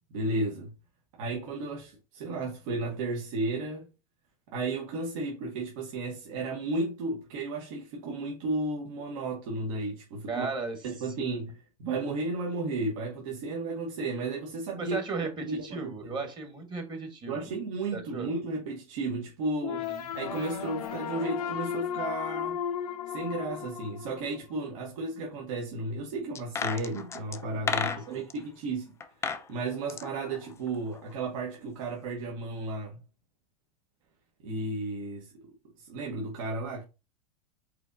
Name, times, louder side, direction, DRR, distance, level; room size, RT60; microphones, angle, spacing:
voice 1, 0.1-0.7 1.2-3.9 4.5-10.5 10.8-15.0 15.5-16.2 17.3-19.9 20.1-22.6 23.1-28.9 29.5-33.0 34.4-35.3 35.8-36.8, right 2 dB, 60° right, 1.2 m, -33 dB
voice 2, 10.3-10.8 11.2-11.4 14.8-17.5 17.9-18.3 19.7-20.1 27.8-28.2, right 3 dB, 25° right, 1.3 m, -36 dB
sound 1, 19.6-24.6, left 8 dB, 90° left, 0.7 m, -34 dB
sound 2, 26.4-28.4 29.0-29.5 29.7-31.1 31.4-31.5, left 5 dB, 15° left, 0.4 m, -33 dB
4.9 x 4.0 x 2.6 m
hypercardioid pair, 125°, 19 cm